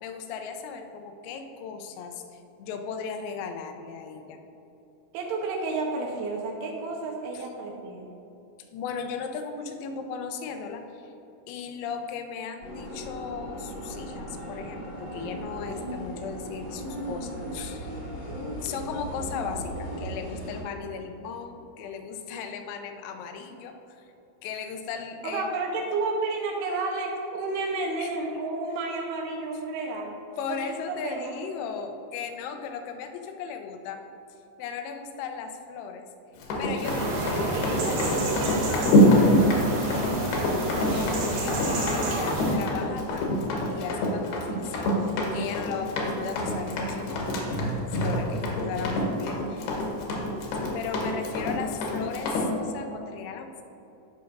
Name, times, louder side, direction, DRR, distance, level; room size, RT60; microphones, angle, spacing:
voice 1, 0.0-4.4 7.3-7.4 8.7-11.1 11.5-18.0 18.6-24.1 24.4-25.5 28.0-28.1 30.4-34.0 34.6-36.1 36.6-38.0 40.7-47.3 47.9-49.7 50.7-53.6, left 6 dB, 85° left, 5 dB, 3.4 m, -36 dB
voice 2, 5.1-8.1 25.2-30.2 30.5-31.4 37.5-39.4, right 3 dB, 80° right, 0 dB, 3.2 m, -31 dB
sound 1, 12.6-20.6, equal, 50° left, 1.3 m, -37 dB
Run, 36.4-52.5, left 1 dB, 70° left, 2.6 m, -25 dB
sound 2, 36.8-42.6, right 2 dB, 65° right, 3.1 m, -30 dB
16.0 x 5.7 x 2.6 m, 2.9 s
omnidirectional pair, 5.9 m